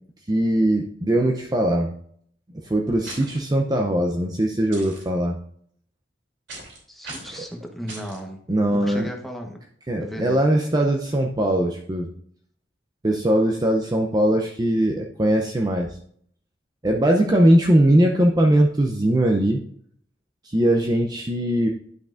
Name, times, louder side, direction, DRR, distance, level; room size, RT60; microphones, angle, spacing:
voice 1, 0.3-1.9 2.6-5.3 8.5-9.1 9.9-12.1 13.0-15.9 16.8-19.6 20.4-21.7, right 1 dB, 20° right, 2 dB, 0.6 m, -20 dB
sound 1, 3.0-3.4 4.7-5.0 6.5-6.8 7.0-7.4 7.9-8.2, right 2 dB, 75° right, 3.0 m, -38 dB
voice 2, 6.9-8.4 8.7-9.6 10.0-10.4, equal, ahead, 2 dB, 1.1 m, -35 dB
10.5 x 5.8 x 2.5 m, 0.63 s
head